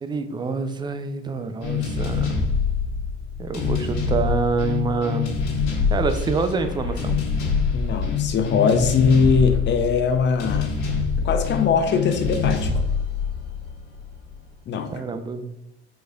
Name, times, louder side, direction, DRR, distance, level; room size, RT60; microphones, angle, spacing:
voice 1, 0.0-2.5 3.4-5.3 5.9-7.2 14.9-15.5, right 4 dB, 15° right, 9 dB, 0.4 m, -26 dB
sound 1, 1.6-14.3, left 5 dB, 50° left, 1.5 m, -25 dB
voice 2, 7.7-10.7 11.2-12.7 14.7-14.9, left 5 dB, 30° left, 7 dB, 0.6 m, -21 dB
4.6 x 4.1 x 2.4 m, 0.88 s
figure-of-eight pair, 60°, 35 cm